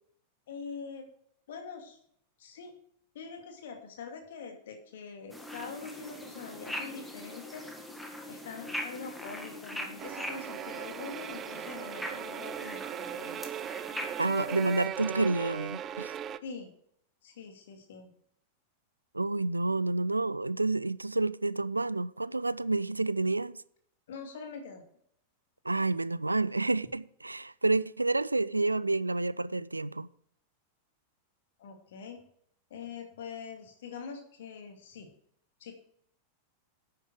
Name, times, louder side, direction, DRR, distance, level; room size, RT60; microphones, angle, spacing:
voice 1, 0.5-1.1 1.5-2.0 2.4-2.7 3.1-7.7 8.3-13.4 16.4-16.7 17.2-18.1 24.1-24.8 31.6-32.2 32.7-35.1 35.6-35.7, left 5 dB, 60° left, 2.5 m, -44 dB
sound 1, 5.3-14.9, equal, 5° left, 1.8 m, -42 dB
sound 2, 10.0-16.4, right 9 dB, 30° right, 0.5 m, -38 dB
voice 2, 14.2-16.1 19.1-23.6 25.7-30.1, right 2 dB, 85° right, 0.4 m, -29 dB
10.5 x 8.9 x 4.7 m
figure-of-eight pair, 90°, 0 cm